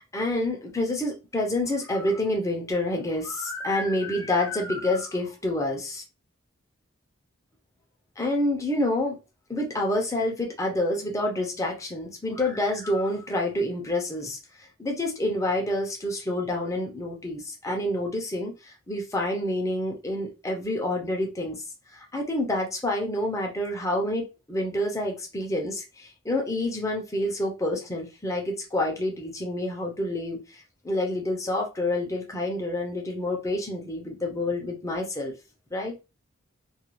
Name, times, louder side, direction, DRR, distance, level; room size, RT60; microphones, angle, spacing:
voice 1, 0.1-6.0 8.2-9.2 9.5-21.6 21.9-35.3 35.7-35.9, left 1 dB, 15° left, 0.6 m, -28 dB
2.4 x 2.4 x 3.0 m
head